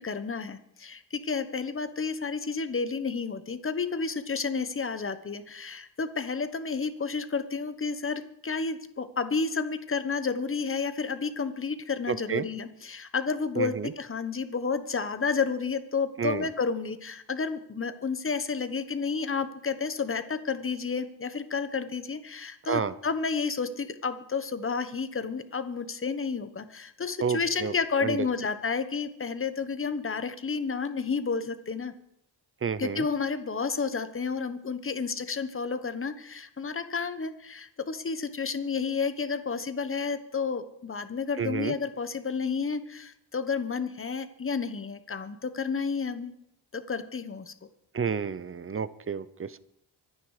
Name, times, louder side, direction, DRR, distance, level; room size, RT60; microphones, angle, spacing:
voice 1, 0.0-31.9 32.8-46.3 46.7-47.5, left 5 dB, 30° left, 11 dB, 1.2 m, -31 dB
voice 2, 12.1-12.5 13.6-13.9 16.2-16.5 22.6-22.9 27.2-27.7 28.0-28.2 32.6-33.0 41.4-41.7 47.9-49.6, right 6 dB, 30° right, 16 dB, 0.7 m, -30 dB
24.5 x 9.6 x 4.9 m, 0.76 s
wide cardioid pair, 140°, 45 cm